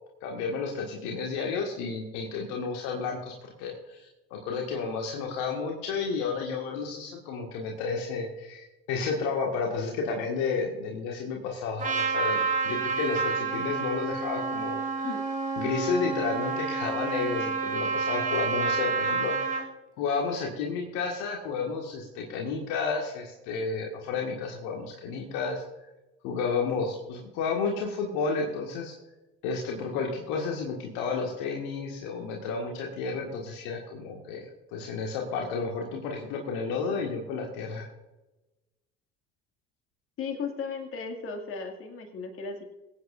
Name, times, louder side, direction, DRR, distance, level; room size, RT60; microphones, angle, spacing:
voice 1, 0.2-15.1 15.6-19.7 20.0-25.6 26.2-28.9 29.4-37.9, left 4 dB, 65° left, 0 dB, 1.9 m, -31 dB
Trumpet, 11.8-19.6, right 4 dB, 25° right, 2.6 m, -29 dB
voice 2, 40.2-42.6, left 5 dB, 45° left, 4 dB, 2.3 m, -35 dB
23.0 x 8.9 x 2.6 m, 1.0 s
figure-of-eight pair, 60°, 30 cm